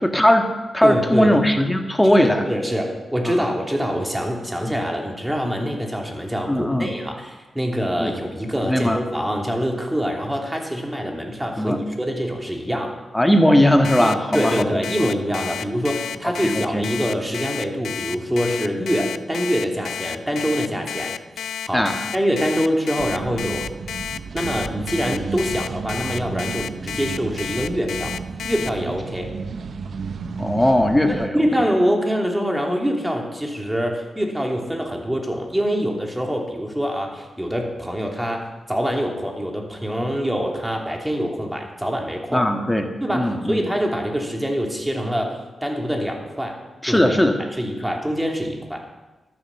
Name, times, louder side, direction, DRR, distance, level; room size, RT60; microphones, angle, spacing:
voice 1, 0.0-2.5 3.2-3.3 4.7-4.8 6.5-6.9 8.0-8.1 8.6-9.0 11.6-11.8 13.1-14.7 16.2-16.8 21.7-22.0 30.4-31.5 42.3-43.6 46.8-47.4, left 1 dB, 10° left, 5 dB, 1.7 m, -19 dB
voice 2, 0.8-1.4 2.2-13.0 14.0-23.7 24.3-28.2 28.4-29.3 31.1-42.5 43.0-46.6 46.9-47.1 47.6-48.8, equal, 10° right, 1 dB, 3.1 m, -25 dB
Alarm, 13.8-28.7, left 8 dB, 90° left, 0.4 m, -31 dB
sound 1, 23.0-31.3, right 5 dB, 70° right, 0.8 m, -32 dB
12.5 x 10.0 x 7.3 m, 1.1 s
cardioid pair, 65°, 0 cm